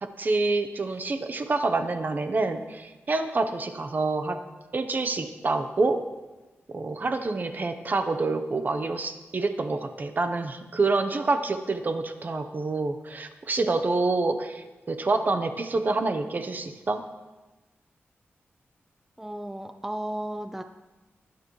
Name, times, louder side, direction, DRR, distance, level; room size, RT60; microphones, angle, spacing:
voice 1, 0.0-4.4 4.7-6.0 6.7-17.0, right 3 dB, 40° right, 8 dB, 0.9 m, -27 dB
voice 2, 19.2-20.6, right 1 dB, 5° right, 7 dB, 0.5 m, -34 dB
19.0 x 9.6 x 3.2 m, 1.2 s
wide cardioid pair, 120°, 5 cm